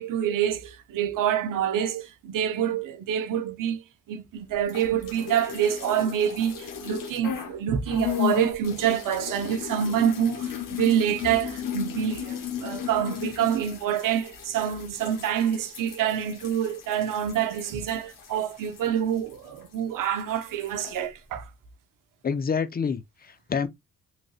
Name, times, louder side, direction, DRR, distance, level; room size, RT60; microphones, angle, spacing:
voice 1, 0.0-3.8 4.1-21.4, right 9 dB, 80° right, 0.6 m, -27 dB
sound 1, 4.6-7.6 7.9-19.8 20.0-21.0, left 10 dB, 90° left, 0.7 m, -36 dB
voice 2, 22.2-23.7, left 6 dB, 30° left, 0.5 m, -28 dB
3.1 x 2.6 x 2.3 m
cardioid pair, 65°, 32 cm